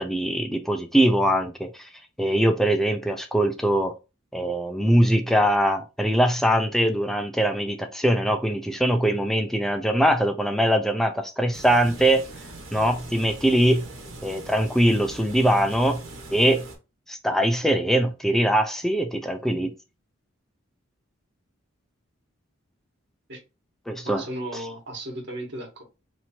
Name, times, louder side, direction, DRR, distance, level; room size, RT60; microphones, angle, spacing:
voice 1, 0.0-1.7 2.2-3.9 4.3-12.2 12.7-13.9 14.2-16.0 16.3-16.6 17.1-19.7 23.9-24.2, right 1 dB, ahead, 0.4 m, -22 dB
sound 1, 11.5-16.8, right 2 dB, 75° right, 1.3 m, -42 dB
voice 2, 24.0-25.8, right 1 dB, 55° right, 1.4 m, -35 dB
3.0 x 2.7 x 4.3 m
head